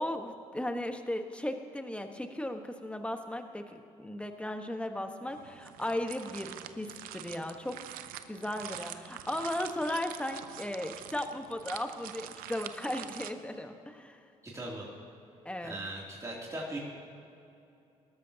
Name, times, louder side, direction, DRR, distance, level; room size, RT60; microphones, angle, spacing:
voice 1, 0.0-7.8 8.3-14.2 15.4-15.8, left 1 dB, 10° left, 6 dB, 1.3 m, -36 dB
sound 1, 5.3-13.3, right 11 dB, 85° right, 0.6 m, -45 dB
voice 2, 14.4-14.9 15.6-16.8, right 1 dB, 20° right, -5 dB, 2.9 m, -39 dB
19.0 x 13.5 x 2.9 m, 2.7 s
supercardioid pair, 60°, 15 cm